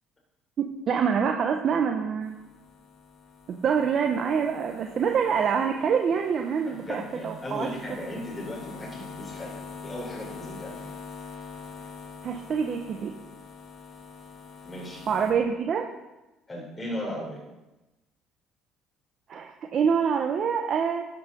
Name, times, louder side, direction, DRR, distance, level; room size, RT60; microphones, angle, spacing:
voice 1, 0.9-2.3 3.5-7.7 8.0-8.1 12.2-13.1 15.1-15.9 19.3-21.0, right 6 dB, 50° right, 3 dB, 1.1 m, -26 dB
sound 1, 2.2-15.3, left 5 dB, 50° left, 2.8 m, -44 dB
voice 2, 6.6-11.0 14.7-15.1 16.5-17.4, left 1 dB, 20° left, -3 dB, 3.7 m, -37 dB
13.0 x 7.1 x 5.3 m, 1.0 s
supercardioid pair, 80°, 0 cm